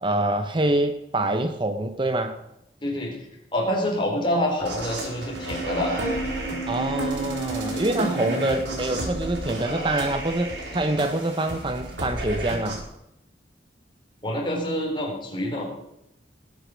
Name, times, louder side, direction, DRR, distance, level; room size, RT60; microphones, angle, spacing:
voice 1, 0.0-2.4 6.7-12.8, right 1 dB, 25° right, 8 dB, 0.8 m, -25 dB
voice 2, 2.8-3.1 3.5-5.9 7.2-7.3 8.1-8.3 14.2-15.7, left 1 dB, 25° left, 0 dB, 4.1 m, -27 dB
sound 1, 4.6-12.8, right 2 dB, 85° right, 4.3 m, -31 dB
20.0 x 8.5 x 6.4 m, 0.84 s
head